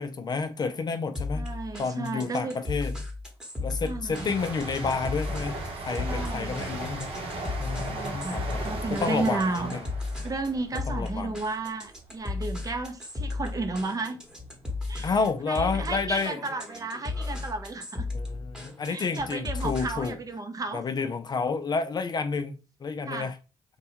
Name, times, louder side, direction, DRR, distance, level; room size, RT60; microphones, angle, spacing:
voice 1, 0.0-3.0 3.6-7.1 7.6-8.6 8.9-9.8 10.7-11.4 15.0-16.5 18.1-20.2 20.7-23.4, left 4 dB, 40° left, 0.4 m, -30 dB
sound 1, 1.1-20.2, left 3 dB, 5° right, 1.0 m, -35 dB
voice 2, 1.3-2.5 3.8-4.3 6.0-6.7 7.9-9.7 10.2-14.2 14.9-15.1 15.5-18.1 18.8-20.8 23.1-23.3, right 3 dB, 35° right, 0.5 m, -33 dB
sound 2, 4.1-11.6 11.9-12.2, right 2 dB, 60° right, 0.8 m, -36 dB
2.6 x 2.2 x 2.9 m
supercardioid pair, 60°, 11 cm